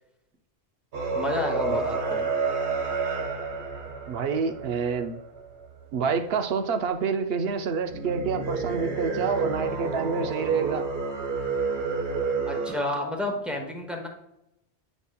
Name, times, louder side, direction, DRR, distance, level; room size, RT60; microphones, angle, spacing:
sound 1, 0.9-5.7 7.9-12.8, right 4 dB, 85° right, 1.3 m, -30 dB
voice 1, 1.1-2.3 12.5-14.1, left 1 dB, ahead, 0.8 m, -30 dB
voice 2, 4.1-5.2 5.9-10.8, right 5 dB, 65° right, 0.8 m, -27 dB
9.8 x 5.0 x 2.3 m
omnidirectional pair, 1.1 m